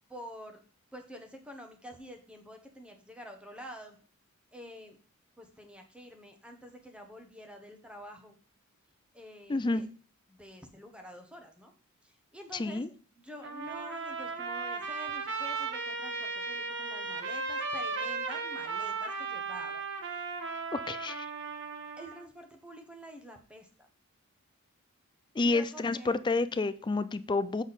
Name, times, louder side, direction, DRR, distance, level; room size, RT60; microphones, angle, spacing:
voice 1, 0.1-0.6 0.9-4.0 4.5-5.0 5.4-8.3 9.1-9.9 10.3-11.7 12.0-12.8 13.1-20.3 22.0-23.9 25.3-26.2, equal, 5° right, 4 dB, 1.0 m, -48 dB
voice 2, 9.5-9.9 12.5-12.9 20.7-21.3 25.4-27.6, left 3 dB, 20° left, 14 dB, 0.3 m, -29 dB
Trumpet, 13.4-22.2, right 4 dB, 55° right, 1.1 m, -36 dB
7.1 x 6.2 x 4.1 m, 0.41 s
head